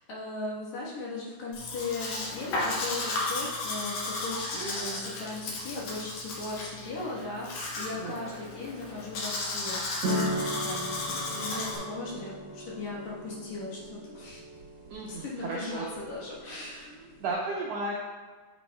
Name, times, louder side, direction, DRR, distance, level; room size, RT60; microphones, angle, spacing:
voice 1, 0.0-9.8 10.2-14.4 15.1-17.1, left 3 dB, 65° left, -6 dB, 2.4 m, -38 dB
Domestic sounds home sounds, 1.5-11.8, left 2 dB, 85° left, 3.1 m, -34 dB
voice 2, 8.0-8.3 12.1-12.2 14.9-15.8 16.5-16.7 17.2-17.9, right 3 dB, 90° right, -3 dB, 1.4 m, -34 dB
sound 1, 10.0-17.3, equal, 65° right, 2.0 m, -37 dB
7.9 x 7.3 x 2.2 m, 1.4 s
omnidirectional pair, 3.9 m